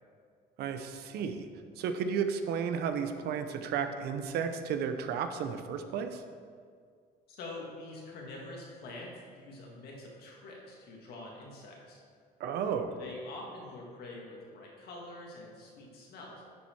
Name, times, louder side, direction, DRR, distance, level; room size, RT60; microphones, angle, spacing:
voice 1, 0.6-1.5 1.8-6.2 12.4-12.9, right 7 dB, 75° right, 8 dB, 0.7 m, -33 dB
voice 2, 7.3-12.0 13.0-16.4, left 2 dB, 65° left, -2 dB, 2.0 m, -45 dB
10.5 x 4.2 x 4.5 m, 2.1 s
cardioid pair, 110°, 17 cm